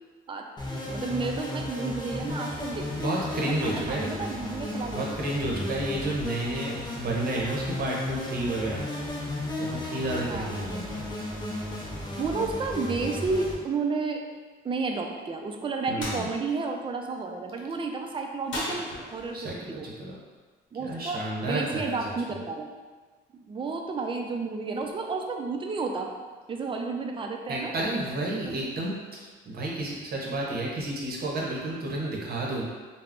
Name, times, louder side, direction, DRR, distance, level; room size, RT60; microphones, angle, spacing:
voice 1, 0.3-3.1 3.3-5.0 10.1-10.6 12.2-14.2 14.6-19.9 20.7-22.7 23.4-26.1 26.5-27.9 28.5-28.6, right 4 dB, 25° right, 3 dB, 0.3 m, -32 dB
sound 1, 0.6-13.5, left 1 dB, 20° left, 0.6 m, -34 dB
voice 2, 3.0-4.1 4.9-11.0 15.9-16.3 19.3-20.2 20.8-22.4 27.5-32.6, right 1 dB, 50° right, -3 dB, 0.7 m, -31 dB
sound 2, 16.0-16.2 18.5-19.5, left 1 dB, 75° left, 0.8 m, -34 dB
2.3 x 2.0 x 3.5 m, 1.4 s
cardioid pair, 90°, 20 cm